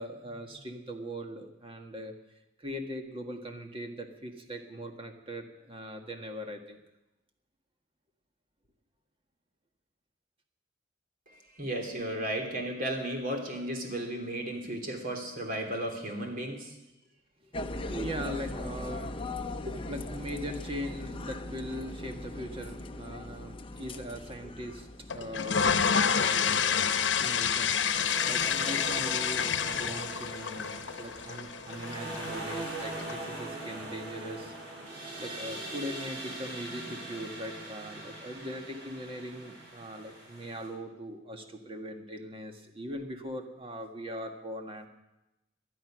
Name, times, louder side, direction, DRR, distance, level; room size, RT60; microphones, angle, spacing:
voice 1, 0.0-2.1 2.6-6.8 11.9-12.3 17.4-19.3 19.6-34.5 35.2-44.9, equal, 30° right, 4 dB, 1.7 m, -40 dB
voice 2, 11.3-16.8 19.7-19.8, right 1 dB, 50° right, 2 dB, 3.1 m, -34 dB
sound 1, 17.5-25.4, left 2 dB, 30° left, 0.8 m, -39 dB
sound 2, 25.1-33.1, left 7 dB, 90° left, 0.9 m, -29 dB
sound 3, 25.4-26.8 27.8-40.7, right 2 dB, 85° right, 6.7 m, -42 dB
19.5 x 12.0 x 6.3 m, 0.95 s
head